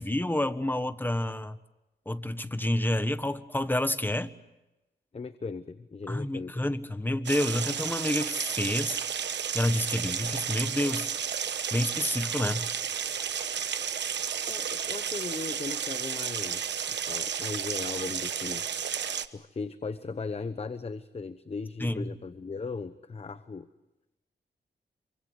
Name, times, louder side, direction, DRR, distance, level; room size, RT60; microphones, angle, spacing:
voice 1, 0.0-1.6 2.0-4.3 6.1-9.0 9.5-11.1 11.7-12.7 21.8-22.1, left 1 dB, 10° left, 11 dB, 1.3 m, -29 dB
voice 2, 5.1-6.6 14.5-18.6 19.3-23.7, left 4 dB, 35° left, 11 dB, 1.0 m, -38 dB
sound 1, 7.3-19.3, right 8 dB, 85° right, 1.1 m, -32 dB
27.0 x 24.5 x 8.1 m, 0.98 s
wide cardioid pair, 95°, 18 cm